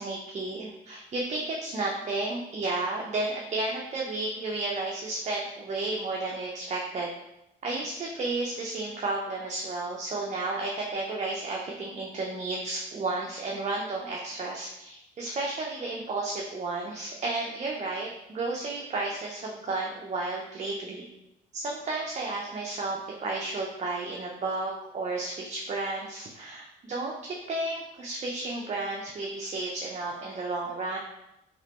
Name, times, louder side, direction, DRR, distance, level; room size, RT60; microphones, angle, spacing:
voice 1, 0.0-7.1 7.6-21.0 21.5-31.0, right 2 dB, 35° right, -2 dB, 0.5 m, -32 dB
3.1 x 2.9 x 2.9 m, 0.87 s
cardioid pair, 90°, 20 cm